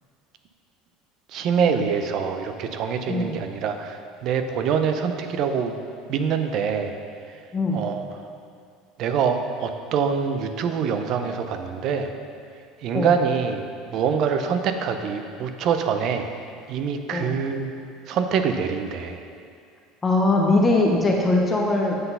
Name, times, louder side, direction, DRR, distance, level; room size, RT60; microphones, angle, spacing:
voice 1, 1.3-5.7 6.1-6.9 7.7-8.0 9.0-12.1 12.8-13.6 13.9-16.3 16.7-17.7 18.1-19.2, right 6 dB, 45° right, 7 dB, 0.5 m, -25 dB
voice 2, 7.5-7.8 12.9-13.1 17.1-17.4 20.0-22.0, left 2 dB, 15° left, 0 dB, 0.6 m, -21 dB
7.9 x 4.0 x 5.3 m, 2.3 s
cardioid pair, 160°, 0 cm